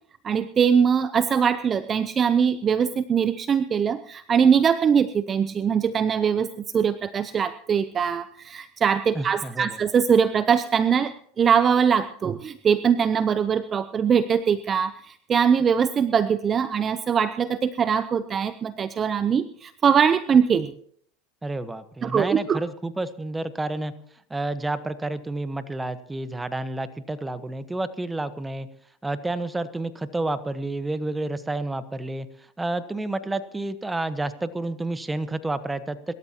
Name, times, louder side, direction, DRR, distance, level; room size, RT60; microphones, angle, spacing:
voice 1, 0.2-6.5 6.7-20.7 22.0-22.6, right 7 dB, 30° right, 13 dB, 0.6 m, -22 dB
voice 2, 9.1-9.8 21.4-23.9 24.3-28.7 29.0-36.1, right 2 dB, 10° right, 12 dB, 1.1 m, -30 dB
25.5 x 13.5 x 2.9 m, 0.62 s
hypercardioid pair, 110°, 0 cm